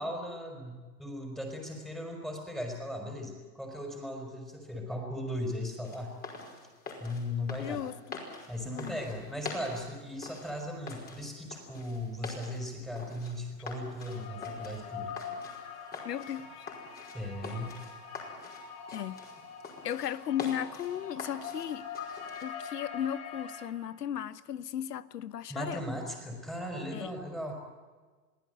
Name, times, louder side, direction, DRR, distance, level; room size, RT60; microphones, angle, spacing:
voice 1, 0.0-6.1 7.0-7.8 8.5-15.1 17.1-17.8 25.5-27.5, left 1 dB, ahead, 5.0 m, -37 dB
sound 1, 5.8-22.4, left 4 dB, 20° left, 5.2 m, -45 dB
voice 2, 7.6-8.2 8.6-9.0 16.0-16.7 18.9-19.2 19.8-21.9 22.4-25.8 26.9-27.1, left 10 dB, 75° left, 1.1 m, -36 dB
sound 2, 14.1-23.7, left 6 dB, 40° left, 5.8 m, -44 dB
23.5 x 16.0 x 9.3 m
hypercardioid pair, 125°, 48 cm